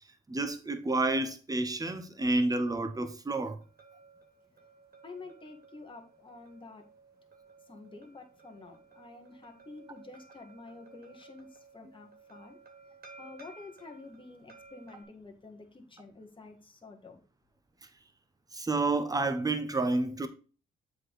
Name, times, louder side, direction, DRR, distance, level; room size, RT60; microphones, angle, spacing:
voice 1, 0.3-3.6 18.5-20.3, right 2 dB, 20° right, 1.1 m, -29 dB
sound 1, 3.6-15.0, right 3 dB, 50° right, 2.3 m, -56 dB
voice 2, 5.0-6.9 7.7-12.6 13.2-17.2, left 3 dB, 25° left, 1.8 m, -49 dB
7.6 x 4.2 x 4.7 m
cardioid pair, 90°, 20 cm